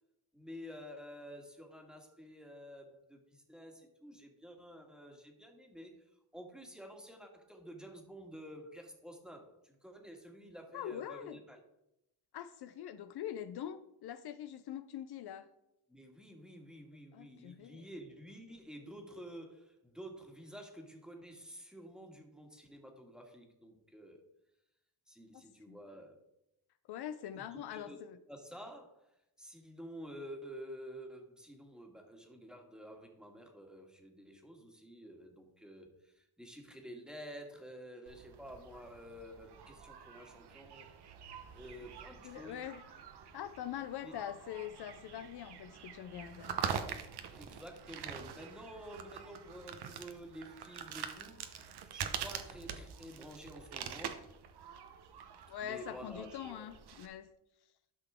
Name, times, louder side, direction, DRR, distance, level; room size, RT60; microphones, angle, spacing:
voice 1, 0.3-6.1 6.3-11.6 15.9-24.2 25.1-26.2 27.3-28.0 28.3-29.1 29.4-40.9 41.5-42.6 44.0-44.1 47.3-54.3 55.6-56.7, equal, ahead, 2 dB, 1.7 m, -50 dB
voice 2, 10.7-11.4 12.3-15.5 17.1-17.9 25.7-25.8 26.9-28.2 42.2-42.8 43.3-46.6 55.5-57.3, left 10 dB, 70° left, 12 dB, 0.6 m, -43 dB
sound 1, 38.1-57.1, right 7 dB, 70° right, 1.0 m, -45 dB
12.5 x 5.9 x 3.6 m, 0.85 s
cardioid pair, 115°, 41 cm